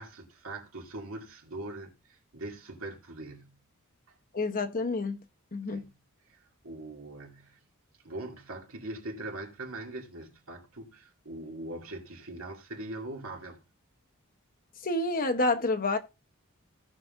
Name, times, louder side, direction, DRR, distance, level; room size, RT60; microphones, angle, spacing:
voice 1, 0.0-3.6 5.7-6.0 6.3-7.6 8.0-13.6, right 2 dB, 70° right, 2.5 m, -42 dB
voice 2, 4.3-5.2 5.5-5.8 14.8-16.0, left 2 dB, 40° left, 1.0 m, -28 dB
17.5 x 5.9 x 2.6 m
head